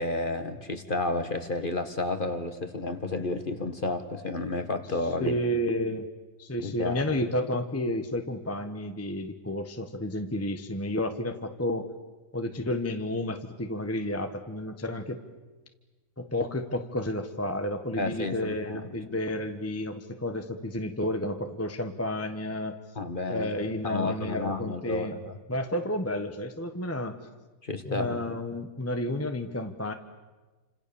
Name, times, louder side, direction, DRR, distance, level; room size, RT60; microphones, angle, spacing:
voice 1, 0.0-5.4 6.6-7.1 17.9-18.8 22.9-23.5 23.8-25.4 27.6-28.2, left 2 dB, 30° left, 9 dB, 1.7 m, -31 dB
voice 2, 5.2-6.1 6.4-11.9 12.3-15.2 16.2-22.8 23.3-25.2 25.5-27.2 27.8-29.9, left 1 dB, 10° left, 7 dB, 1.1 m, -31 dB
29.0 x 26.5 x 7.1 m, 1.2 s
omnidirectional pair, 1.7 m